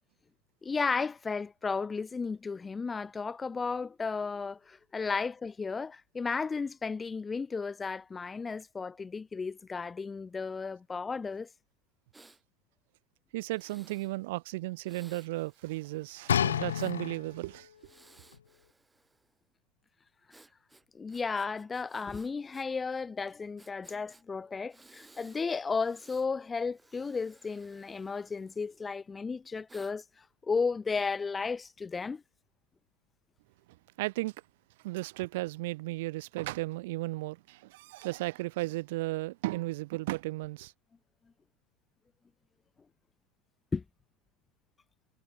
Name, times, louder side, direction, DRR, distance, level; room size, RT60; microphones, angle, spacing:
voice 1, 0.6-11.5 20.9-30.0 30.4-32.2 43.7-43.8, left 4 dB, 15° left, 1.7 m, -34 dB
Breathing, 12.1-12.4 13.5-14.1 14.8-17.0 17.7-19.4 20.3-22.7 22.9-23.0 23.6-24.2 24.7-25.4 25.8-26.3 26.7-28.9 29.7-29.9, right 2 dB, 10° right, 7.8 m, -60 dB
voice 2, 13.3-17.7 34.0-34.3 34.8-40.7, right 20 dB, 50° right, 1.4 m, -35 dB
sound 1, 16.3-17.6 18.3-18.4, left 9 dB, 65° left, 0.3 m, -29 dB
figure-of-eight pair, 90°, 0 cm